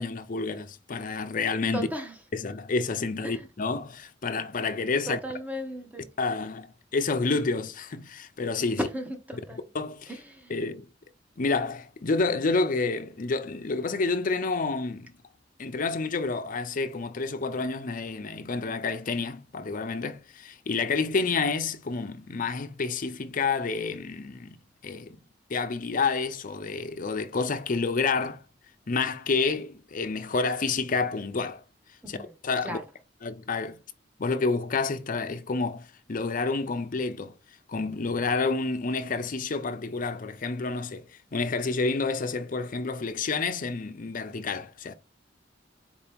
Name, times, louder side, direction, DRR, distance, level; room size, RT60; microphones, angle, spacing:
voice 1, 0.0-1.9 2.3-5.2 6.2-8.8 9.7-10.1 10.5-10.9 11.4-15.1 15.6-24.6 24.8-25.1 25.5-28.4 28.9-31.6 32.1-32.2 32.4-32.8 33.2-33.8 34.2-37.3 37.7-44.9, left 4 dB, 45° left, 0.6 m, -29 dB
voice 2, 1.7-2.1 3.2-3.5 5.0-6.1 8.7-9.7 10.1-10.6 32.0-32.3 32.6-32.9, equal, 10° right, 1.0 m, -35 dB
4.5 x 2.9 x 3.4 m
head